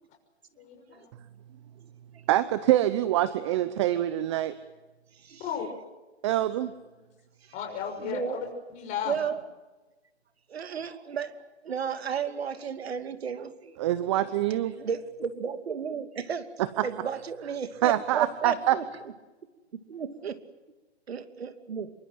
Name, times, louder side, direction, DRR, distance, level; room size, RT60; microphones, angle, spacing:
voice 1, 0.6-1.1 5.4-5.7 7.5-9.2, left 8 dB, 20° left, 2 dB, 6.2 m, -34 dB
voice 2, 2.3-4.6 6.2-6.7 13.8-14.7 16.6-16.9 17.8-18.8, right 13 dB, 25° right, 14 dB, 0.9 m, -25 dB
voice 3, 8.0-8.4 9.1-9.4 10.5-13.8 14.8-16.5 16.8-18.9 19.7-20.4 21.1-21.9, right 7 dB, 65° right, 10 dB, 2.7 m, -33 dB
28.0 x 24.0 x 7.8 m, 1.2 s
hypercardioid pair, 155°, 33 cm